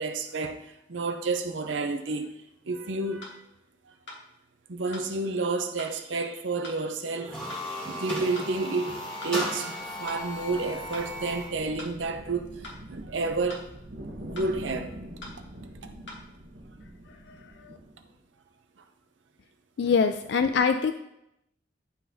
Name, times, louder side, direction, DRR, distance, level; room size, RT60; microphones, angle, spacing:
voice 1, 0.0-2.3 2.7-3.4 4.7-9.0 9.2-13.7 14.2-14.9 19.8-20.1, right 3 dB, 85° right, 0.7 m, -30 dB
sound 1, 3.2-3.4 4.1-4.2 4.9-5.1 5.8-5.9 6.6-6.8 7.5-7.7 8.3-8.5 9.2-9.4 10.1-10.2 10.9-11.1 11.8-11.9 12.6-12.8 13.5-13.7 14.4-14.5 15.2-15.4 16.1-16.2, left 2 dB, 80° left, 1.5 m, -42 dB
sound 2, 7.2-11.6, equal, 5° left, 1.6 m, -35 dB
sound 3, 9.7-18.2, right 1 dB, 65° right, 1.0 m, -44 dB
voice 2, 19.8-20.9, left 5 dB, 60° left, 0.3 m, -24 dB
11.0 x 3.8 x 2.7 m
head